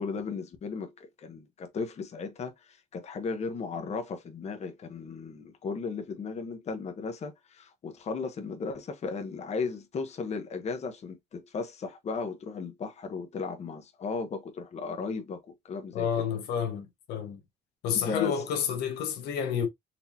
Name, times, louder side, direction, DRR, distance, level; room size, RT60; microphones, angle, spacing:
voice 1, 0.0-16.3 17.9-18.4, left 4 dB, 40° left, 1.0 m, -36 dB
voice 2, 15.9-17.4 17.8-19.7, left 8 dB, 85° left, 1.0 m, -30 dB
4.3 x 2.9 x 2.7 m
cardioid pair, 110°, 17 cm